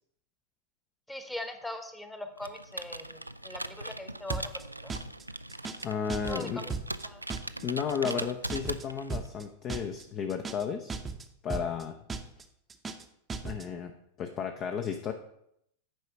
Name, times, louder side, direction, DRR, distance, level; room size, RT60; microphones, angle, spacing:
voice 1, 1.1-4.5 4.8-4.9 6.3-6.7 7.0-7.2, left 1 dB, 5° left, 8 dB, 1.1 m, -41 dB
Computer keyboard, 2.4-9.3, right 1 dB, 85° right, 0.3 m, -40 dB
sound 1, 4.3-4.6 4.9-5.2 5.5-5.8 6.1-6.4 6.7-7.0 7.3-7.6 7.9-8.2 8.5-8.8 9.1-9.4 9.7-10.0 10.3-10.6 10.9-11.2 11.5-11.8 12.1-12.4 12.7-13.0 13.3-13.6, right 4 dB, 15° right, 0.8 m, -36 dB
voice 2, 5.8-6.6 7.6-11.0 11.4-12.0 13.4-13.9 14.2-15.1, left 7 dB, 35° left, 6 dB, 0.7 m, -33 dB
9.3 x 5.0 x 6.2 m, 0.74 s
figure-of-eight pair, 90°, 0 cm